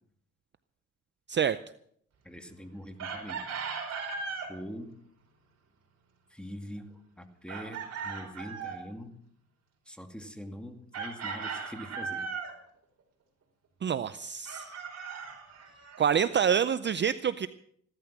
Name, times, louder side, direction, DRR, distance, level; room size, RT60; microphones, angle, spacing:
voice 1, 2.2-3.4 4.5-4.9 6.3-9.1 9.9-12.3, equal, 5° left, 5 dB, 2.3 m, -43 dB
Chicken rooster, 3.0-4.5 7.5-8.8 10.9-12.6 14.5-16.0, right 5 dB, 55° right, 4.5 m, -37 dB
voice 2, 13.8-14.7 16.0-17.5, right 8 dB, 35° right, 14 dB, 0.6 m, -27 dB
16.0 x 12.5 x 6.0 m, 0.67 s
cardioid pair, 90°, 30 cm